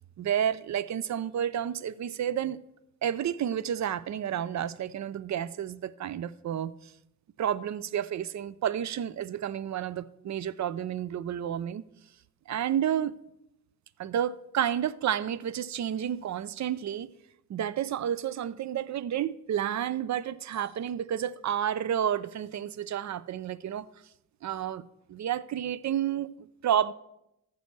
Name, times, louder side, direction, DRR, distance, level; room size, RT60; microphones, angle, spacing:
voice 1, 0.2-2.6 3.0-6.9 7.4-11.8 12.5-13.2 14.0-17.1 17.5-23.9 24.4-26.9, right 9 dB, 40° right, 0.5 m, -30 dB
14.0 x 6.9 x 3.2 m
hypercardioid pair, 40°, 45 cm